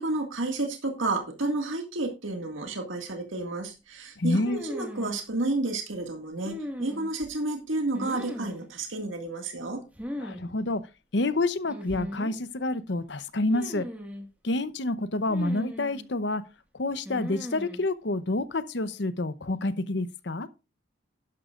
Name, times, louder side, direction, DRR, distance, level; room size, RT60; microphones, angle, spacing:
voice 1, 0.0-9.8, right 2 dB, 85° right, 2.0 m, -31 dB
voice 2, 4.2-4.6 10.2-10.8 11.1-13.9 14.4-16.4 16.7-20.5, left 2 dB, 65° left, 0.8 m, -28 dB
sound 1, 4.4-5.2 6.5-7.3 7.9-8.7 10.0-10.4 10.7-10.8 11.7-12.4 13.5-14.3 15.3-16.1 17.1-17.8, equal, 10° right, 1.8 m, -38 dB
11.5 x 11.0 x 2.5 m
head